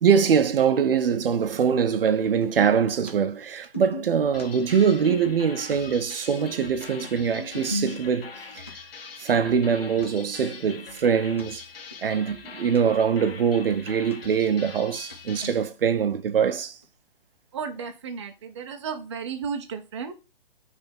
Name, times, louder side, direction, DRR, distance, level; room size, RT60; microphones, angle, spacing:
voice 1, 0.0-8.7 9.2-11.6 12.0-16.8, right 7 dB, 75° right, 0.8 m, -23 dB
sound 1, 2.4-2.8 3.1-3.2 3.4-5.8 6.1-8.3 8.7-8.8 9.2-9.3 9.7-9.8 10.0-10.1 10.4-11.4 11.9-12.0 12.3-12.8 13.1-14.1 14.4-15.1 15.4-15.8 16.1-16.2 16.8-16.9, left 2 dB, 15° left, 0.4 m, -37 dB
sound 2, 4.3-15.6, left 5 dB, 85° left, 1.2 m, -43 dB
voice 2, 17.5-20.1, right 6 dB, 30° right, 0.7 m, -33 dB
5.5 x 3.5 x 5.2 m
hypercardioid pair, 175°, 29 cm